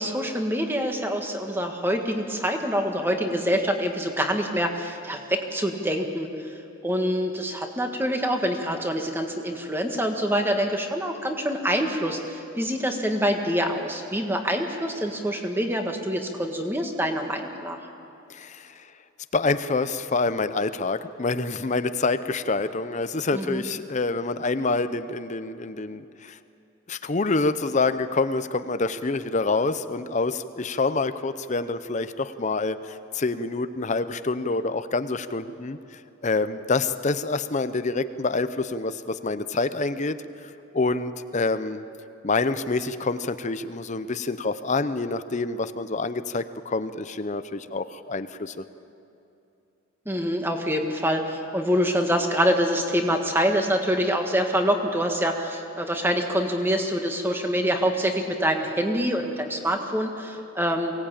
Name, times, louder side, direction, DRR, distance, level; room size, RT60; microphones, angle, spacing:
voice 1, 0.0-6.3 6.8-17.8 23.3-23.6 50.0-60.9, equal, 10° right, 4 dB, 1.6 m, -25 dB
voice 2, 18.3-18.7 19.3-26.4 26.9-35.8 36.2-40.2 40.7-41.8 42.2-48.6, left 3 dB, 35° left, 12 dB, 0.6 m, -27 dB
23.0 x 18.0 x 8.8 m, 2.7 s
head